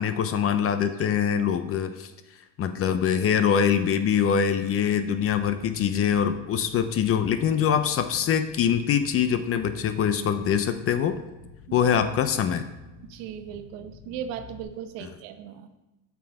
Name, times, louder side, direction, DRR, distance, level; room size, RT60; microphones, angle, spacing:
voice 1, 0.0-2.1 2.6-11.2 11.7-12.7 15.0-15.1, left 8 dB, 35° left, 10 dB, 0.4 m, -24 dB
Bass guitar, 8.0-14.6, left 3 dB, 85° left, 3.2 m, -49 dB
voice 2, 13.1-15.8, right 8 dB, 75° right, 8 dB, 0.9 m, -37 dB
7.5 x 5.9 x 4.8 m, 1.0 s
cardioid pair, 125°, 43 cm